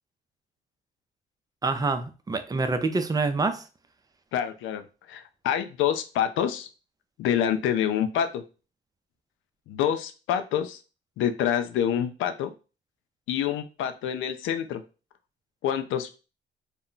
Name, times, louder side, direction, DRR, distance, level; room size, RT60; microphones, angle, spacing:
voice 1, 1.6-3.6, right 3 dB, 20° right, 0.4 m, -26 dB
voice 2, 4.3-6.7 7.2-8.4 9.7-10.8 11.2-12.5 13.3-14.8 15.6-16.1, left 9 dB, 85° left, 0.4 m, -27 dB
2.2 x 2.1 x 3.7 m
cardioid pair, 90°, 20 cm